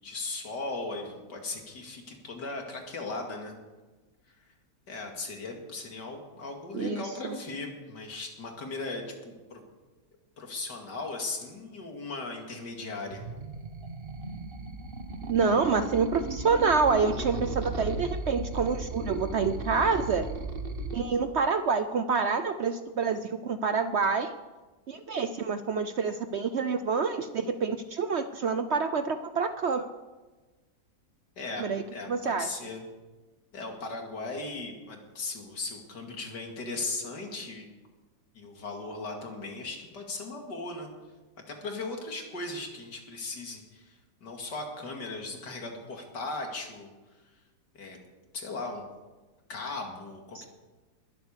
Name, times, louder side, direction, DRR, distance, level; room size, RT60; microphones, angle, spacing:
voice 1, 0.0-3.5 4.9-9.6 10.4-13.2 31.4-32.8 33.5-37.7 38.3-40.9 41.5-46.9 47.1-47.2 47.7-48.0 48.3-48.8 49.5-50.5, left 3 dB, 80° left, 2 dB, 2.9 m, -37 dB
sound 1, 13.1-21.0, right 3 dB, 40° right, 1.2 m, -36 dB
voice 2, 15.3-20.2 20.9-24.3 24.9-29.9 31.6-31.8 32.1-32.6 50.3-50.4, right 5 dB, 60° right, 10 dB, 0.7 m, -27 dB
21.0 x 8.1 x 6.7 m, 1.2 s
omnidirectional pair, 1.8 m